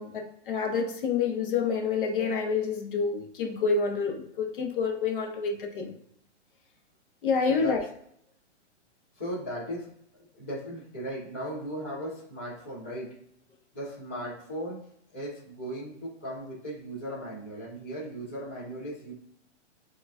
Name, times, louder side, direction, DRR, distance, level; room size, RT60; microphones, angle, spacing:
voice 1, 0.0-5.9 7.2-7.8, left 5 dB, 45° left, 2 dB, 0.9 m, -28 dB
voice 2, 7.4-7.9 9.1-9.9 10.3-13.2 13.7-19.1, equal, 10° left, -10 dB, 0.4 m, -37 dB
6.4 x 2.3 x 2.4 m, 0.70 s
hypercardioid pair, 170°, 36 cm